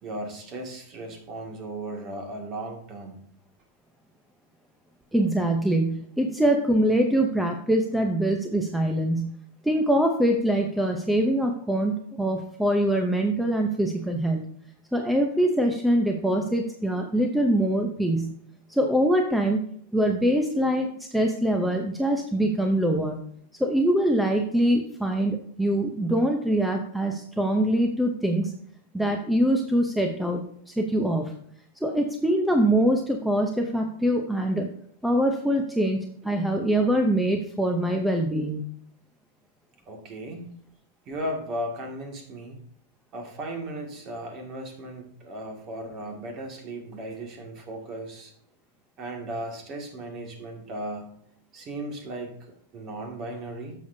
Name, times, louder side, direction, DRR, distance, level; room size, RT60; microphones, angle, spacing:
voice 1, 0.0-3.2 39.9-40.5 41.1-42.6 43.1-48.3 49.0-51.1 51.5-53.7, right 1 dB, 30° right, 3 dB, 2.0 m, -36 dB
voice 2, 5.1-9.3 9.6-14.4 14.9-18.3 18.7-19.6 19.9-23.2 23.6-28.5 28.9-31.3 31.8-34.7 35.0-38.6, right 1 dB, ahead, 3 dB, 0.7 m, -24 dB
10.0 x 7.0 x 2.7 m, 0.66 s
supercardioid pair, 145°, 0 cm